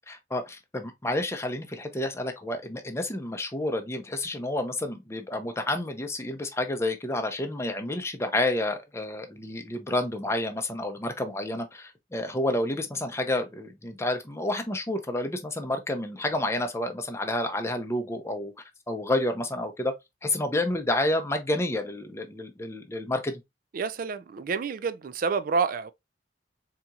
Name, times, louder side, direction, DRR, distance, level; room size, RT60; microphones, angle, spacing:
voice 1, 0.1-18.5 18.9-19.9 20.2-23.4, left 1 dB, 15° left, 0.6 m, -29 dB
voice 2, 23.7-25.9, right 5 dB, 50° right, 0.4 m, -28 dB
4.1 x 2.8 x 2.3 m
head